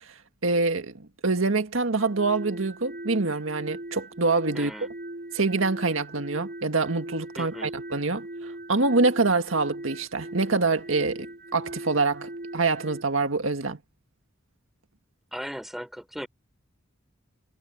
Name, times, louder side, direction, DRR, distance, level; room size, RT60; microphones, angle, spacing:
voice 1, 0.4-4.7 5.3-13.8, right 3 dB, 80° right, 1.9 m, -25 dB
sound 1, 2.0-13.0, right 1 dB, 50° right, 3.1 m, -40 dB
voice 2, 4.5-4.9 7.4-7.7 15.3-16.3, equal, ahead, 4.1 m, -37 dB
head